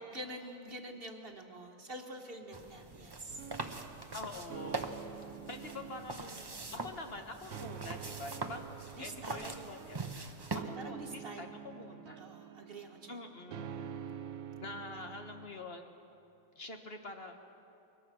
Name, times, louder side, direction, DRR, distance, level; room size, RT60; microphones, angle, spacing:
voice 1, 0.1-3.5 8.9-9.5 10.6-11.6 12.2-13.2 14.9-15.1, right 1 dB, 45° right, 3 dB, 1.6 m, -46 dB
sound 1, 2.5-10.6, right 3 dB, 20° right, 0.8 m, -43 dB
sound 2, 3.3-15.5, right 8 dB, 80° right, 1.2 m, -48 dB
voice 2, 4.1-5.0 5.5-10.1 10.5-12.2 13.1-13.7 14.6-15.9 16.5-17.4, left 2 dB, 45° left, 4 dB, 1.4 m, -46 dB
22.5 x 21.5 x 6.3 m, 2.7 s
omnidirectional pair, 1.5 m